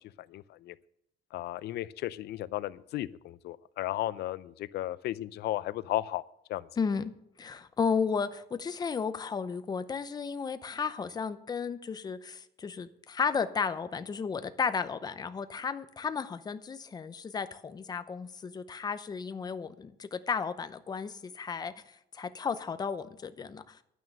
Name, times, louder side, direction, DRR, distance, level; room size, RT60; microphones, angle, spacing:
voice 1, 0.2-0.8 1.3-6.2 6.5-6.7, left 14 dB, 85° left, 17 dB, 0.6 m, -34 dB
voice 2, 6.8-7.1 7.4-21.7 22.1-23.8, left 5 dB, 25° left, 11 dB, 0.7 m, -33 dB
11.0 x 9.4 x 6.5 m, 0.77 s
cardioid pair, 165°, 17 cm